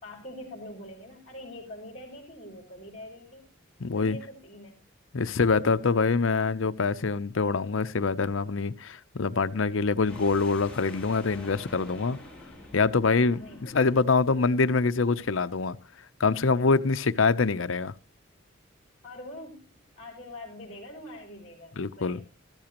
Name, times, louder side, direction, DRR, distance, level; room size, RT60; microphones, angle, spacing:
voice 1, 0.0-3.5 3.9-4.8 13.2-13.9 19.0-22.2, left 1 dB, 30° left, 4.3 m, -44 dB
voice 2, 3.8-4.2 5.1-12.2 12.7-15.8 16.2-17.9 21.8-22.2, left 4 dB, 75° left, 0.7 m, -25 dB
sound 1, 10.0-14.3, left 2 dB, 5° left, 3.5 m, -46 dB
14.0 x 13.5 x 3.0 m
head